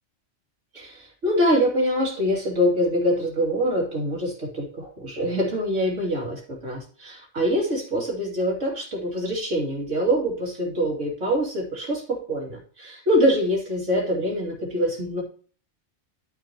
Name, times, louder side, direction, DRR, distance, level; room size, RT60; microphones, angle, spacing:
voice 1, 0.7-15.2, equal, 85° right, -1 dB, 3.0 m, -24 dB
12.0 x 6.2 x 2.9 m, 0.43 s
omnidirectional pair, 1.2 m